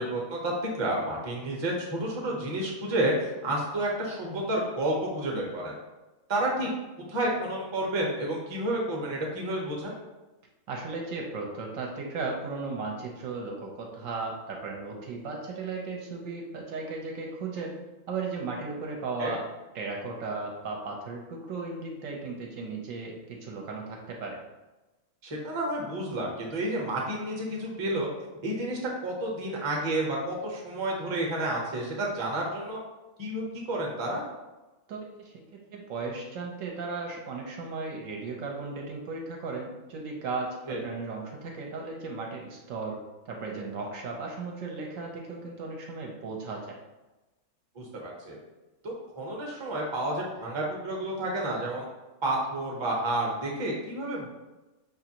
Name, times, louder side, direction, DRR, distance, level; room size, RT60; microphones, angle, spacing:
voice 1, 0.0-5.7 6.3-6.7 7.0-9.9 19.2-19.3 25.2-28.1 28.4-32.8 33.2-34.2 40.7-40.8 47.7-48.4 48.8-51.9 52.2-54.3, right 1 dB, 25° right, -2 dB, 0.6 m, -30 dB
voice 2, 10.7-17.8 18.1-19.4 19.7-24.4 34.9-35.3 35.7-43.0 43.3-46.8, right 3 dB, 70° right, 0 dB, 0.9 m, -36 dB
5.2 x 2.5 x 2.8 m, 1.1 s
omnidirectional pair, 1.6 m